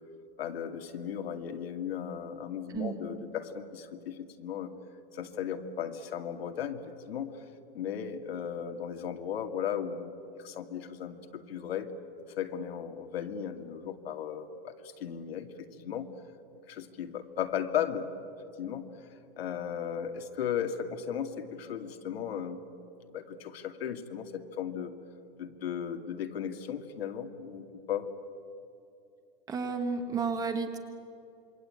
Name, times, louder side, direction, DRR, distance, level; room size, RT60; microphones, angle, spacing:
voice 1, 0.4-4.7 5.1-7.5 7.7-10.1 10.4-11.9 12.3-16.1 16.7-18.1 18.6-18.9 19.4-22.6 23.1-24.9 25.4-28.1, left 8 dB, 75° left, 5 dB, 2.4 m, -36 dB
voice 2, 29.5-30.8, right 5 dB, 10° right, 6 dB, 1.3 m, -32 dB
27.0 x 23.0 x 8.8 m, 2.6 s
supercardioid pair, 175°, 30 cm